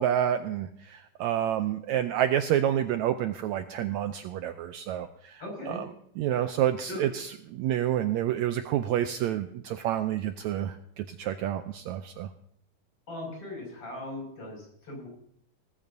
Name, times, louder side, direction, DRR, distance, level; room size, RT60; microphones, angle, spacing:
voice 1, 0.0-5.9 6.2-12.3, right 11 dB, 80° right, 8 dB, 1.7 m, -29 dB
voice 2, 5.4-5.8 6.9-7.1 13.1-15.1, left 2 dB, 45° left, -1 dB, 7.0 m, -39 dB
18.5 x 14.5 x 2.7 m, 0.68 s
omnidirectional pair, 3.7 m